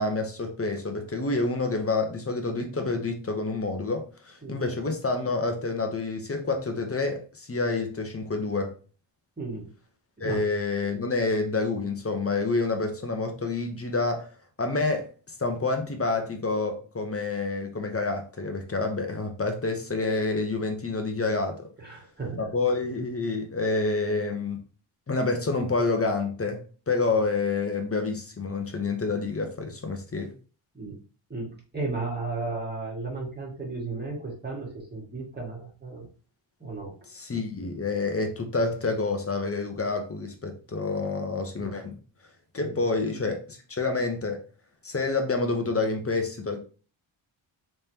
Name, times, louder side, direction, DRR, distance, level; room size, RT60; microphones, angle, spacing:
voice 1, 0.0-8.7 10.2-14.3 14.6-15.1 15.4-21.7 22.4-24.6 25.1-30.3 37.1-41.9 42.5-44.4 44.8-46.6, left 3 dB, 30° left, 4 dB, 0.8 m, -28 dB
voice 2, 21.8-22.4 30.7-30.9 31.3-36.1 36.6-37.0 41.6-41.7 42.6-42.8, right 3 dB, 20° right, -3 dB, 1.7 m, -34 dB
3.4 x 3.3 x 2.8 m, 0.37 s
wide cardioid pair, 90°, 49 cm